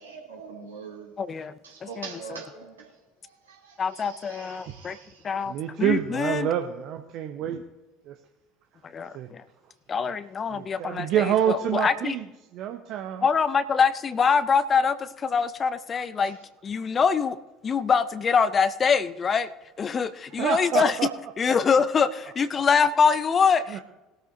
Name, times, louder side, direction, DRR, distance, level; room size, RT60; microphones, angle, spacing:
voice 1, 0.0-1.1 1.6-2.9 3.5-5.2, right 5 dB, 75° right, 2.8 m, -43 dB
voice 2, 1.2-2.4 3.8-5.0 5.2-6.5 8.8-9.4 9.9-12.2 13.2-16.4 16.6-17.4 17.6-19.5 19.8-21.0 21.4-23.8, left 6 dB, 30° left, 0.6 m, -24 dB
voice 3, 5.5-7.6 8.1-8.2 9.1-9.3 10.5-12.2 12.5-13.2 20.4-21.1 22.5-22.6 23.7-23.8, right 10 dB, 50° right, 0.8 m, -27 dB
20.0 x 13.0 x 2.7 m
figure-of-eight pair, 65°, 0 cm